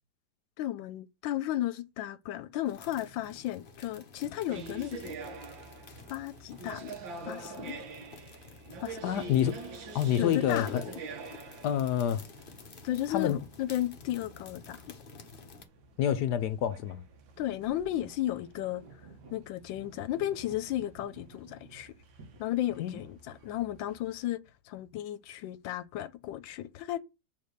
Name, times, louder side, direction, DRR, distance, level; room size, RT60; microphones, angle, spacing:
voice 1, 0.6-5.2 6.1-7.0 7.2-7.8 8.8-9.2 10.2-10.9 12.8-14.8 17.4-18.8 19.3-21.9 22.4-27.0, left 13 dB, 85° left, 1.3 m, -34 dB
sound 1, 2.7-15.6, left 4 dB, 40° left, 0.8 m, -51 dB
sound 2, 4.5-24.2, right 3 dB, 90° right, 1.8 m, -46 dB
voice 2, 9.0-9.6 9.9-10.9 11.6-12.2 13.1-13.4 16.0-17.0 22.8-23.0, left 10 dB, 70° left, 1.1 m, -28 dB
sound 3, 17.4-21.9 22.2-23.4, right 2 dB, 65° right, 1.9 m, -53 dB
7.1 x 3.9 x 6.5 m
omnidirectional pair, 2.0 m